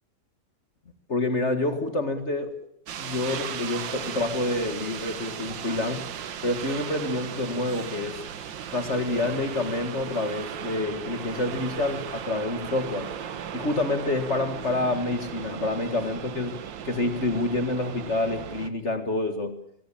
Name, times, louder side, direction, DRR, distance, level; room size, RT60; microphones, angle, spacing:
voice 1, 1.1-2.5 3.0-6.1 6.4-8.2 8.7-13.1 13.5-19.6, left 2 dB, 40° left, 7 dB, 2.1 m, -28 dB
sound 1, 2.9-18.7, right 8 dB, 80° right, 1.9 m, -36 dB
23.5 x 19.5 x 8.7 m, 0.71 s
omnidirectional pair, 2.0 m